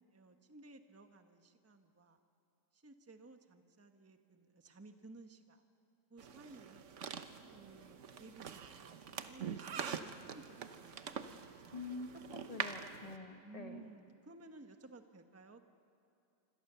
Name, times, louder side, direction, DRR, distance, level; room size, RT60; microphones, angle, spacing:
voice 1, 0.1-2.2 2.7-5.6 6.1-7.0 7.5-11.2 11.6-11.8 13.4-15.6, right 2 dB, 10° right, 6 dB, 0.9 m, -57 dB
sound 1, 6.2-13.2, right 7 dB, 50° right, 1.1 m, -45 dB
voice 2, 11.7-13.8, left 3 dB, 25° left, 5 dB, 1.4 m, -46 dB
27.0 x 25.0 x 6.9 m, 2.7 s
omnidirectional pair, 1.8 m